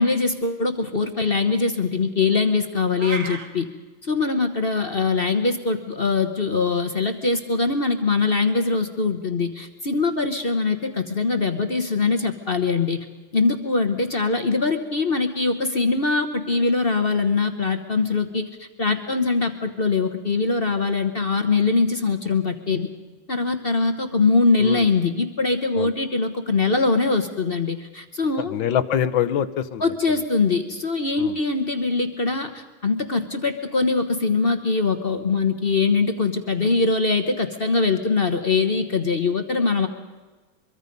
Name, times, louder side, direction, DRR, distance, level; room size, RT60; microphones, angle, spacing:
voice 1, 0.0-3.7 4.0-13.1 13.3-22.9 23.3-28.5 29.8-39.9, left 4 dB, 35° left, 7 dB, 1.0 m, -22 dB
sound 1, 3.0-3.5, right 4 dB, 60° right, 2.4 m, -31 dB
voice 2, 28.4-29.8 31.2-31.4, left 9 dB, 70° left, 11 dB, 1.5 m, -24 dB
24.0 x 23.5 x 5.3 m, 1.3 s
omnidirectional pair, 2.3 m